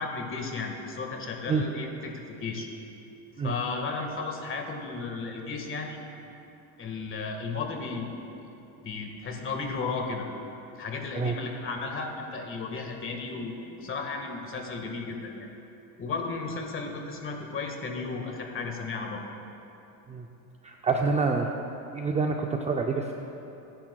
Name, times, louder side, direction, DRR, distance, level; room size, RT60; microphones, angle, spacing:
voice 1, 0.0-2.7 3.4-6.0 6.8-8.2 8.8-10.3 10.8-15.5 16.0-19.2, left 4 dB, 30° left, 2 dB, 1.6 m, -34 dB
voice 2, 20.6-21.5 21.9-23.1, right 4 dB, 15° right, 2 dB, 0.4 m, -27 dB
21.5 x 10.0 x 2.3 m, 2.9 s
supercardioid pair, 115°, 44 cm